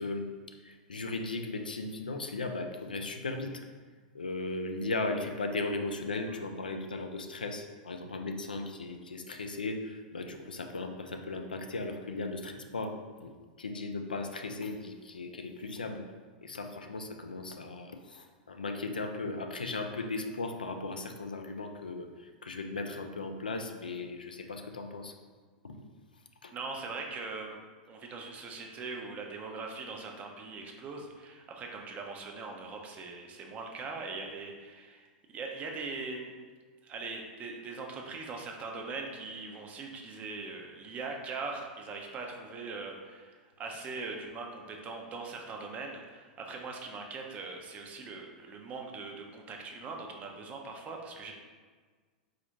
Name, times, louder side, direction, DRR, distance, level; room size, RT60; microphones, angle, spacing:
voice 1, 0.0-3.6 4.1-13.3 13.6-16.0 16.4-25.1 25.6-25.9 26.4-26.5, left 3 dB, 85° left, 5 dB, 0.3 m, -37 dB
voice 2, 26.5-27.6 27.9-35.1 35.3-36.3 36.8-51.3, right 4 dB, 30° right, 2 dB, 0.5 m, -41 dB
4.0 x 2.4 x 3.0 m, 1.5 s
figure-of-eight pair, 95°, 5 cm